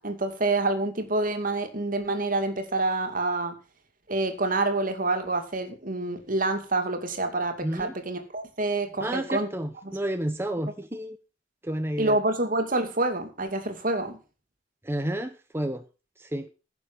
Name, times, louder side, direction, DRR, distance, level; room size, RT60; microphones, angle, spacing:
voice 1, 0.0-3.6 4.1-9.5 9.8-10.0 12.0-14.2, right 2 dB, 50° right, 2.6 m, -27 dB
voice 2, 7.6-7.9 9.0-11.2 11.6-12.2 14.8-15.8 16.2-16.5, right 1 dB, 15° right, 0.9 m, -31 dB
15.5 x 7.1 x 6.3 m
head